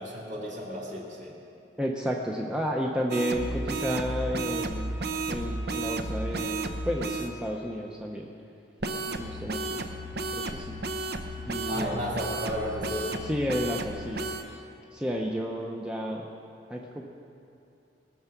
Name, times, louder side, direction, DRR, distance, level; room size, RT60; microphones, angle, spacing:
voice 1, 0.0-1.4 11.7-13.1, equal, 45° right, -3 dB, 2.4 m, -33 dB
voice 2, 1.8-5.0 5.3-8.3 9.1-9.8 10.3-10.8 11.4-12.1 13.2-14.6 14.9-16.3 16.7-17.1, equal, 5° right, -1 dB, 0.7 m, -32 dB
sound 1, 3.1-7.3 8.8-14.4, right 2 dB, 60° right, 0.8 m, -33 dB
19.5 x 6.7 x 5.9 m, 2.6 s
head